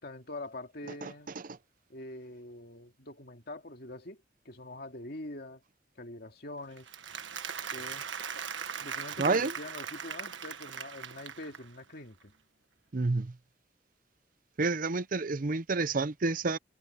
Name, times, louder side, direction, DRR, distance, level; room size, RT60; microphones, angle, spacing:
voice 1, 0.0-1.3 1.9-5.6 6.0-6.9 7.7-8.0 8.8-12.3, left 1 dB, 55° left, 2.5 m, -44 dB
Applause, 6.8-11.8, right 7 dB, 85° right, 1.5 m, -39 dB
voice 2, 9.2-9.5 12.9-13.3 14.6-16.6, right 3 dB, 45° right, 0.7 m, -29 dB
head